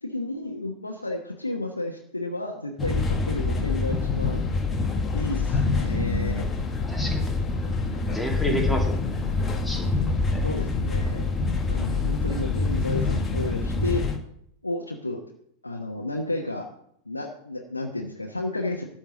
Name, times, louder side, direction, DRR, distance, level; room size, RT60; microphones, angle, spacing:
voice 1, 0.0-4.4 5.1-6.4 10.4-11.2 11.7-14.1 14.6-15.2 15.6-16.7 17.1-18.8, left 2 dB, 80° left, 1 dB, 1.2 m, -32 dB
sound 1, 2.8-14.2, left 3 dB, 20° left, 1.3 m, -26 dB
voice 2, 6.9-7.4 8.1-9.2 9.6-10.0 10.3-10.4, equal, 5° left, 0 dB, 2.6 m, -31 dB
12.5 x 4.4 x 7.8 m, 0.71 s
figure-of-eight pair, 90°, 0 cm